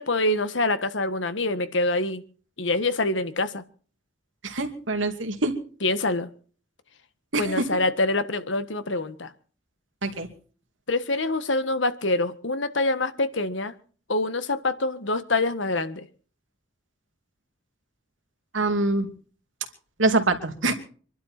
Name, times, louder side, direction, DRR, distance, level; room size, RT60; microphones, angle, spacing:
voice 1, 0.0-2.2 2.6-3.6 5.8-6.3 7.3-9.3 10.9-13.7 14.1-16.1, left 2 dB, 75° left, 12 dB, 1.6 m, -25 dB
voice 2, 4.4-5.5 7.3-7.6 10.0-10.3 18.5-19.1 20.0-20.7, right 2 dB, 90° right, 6 dB, 2.6 m, -24 dB
26.0 x 12.0 x 4.4 m, 0.42 s
head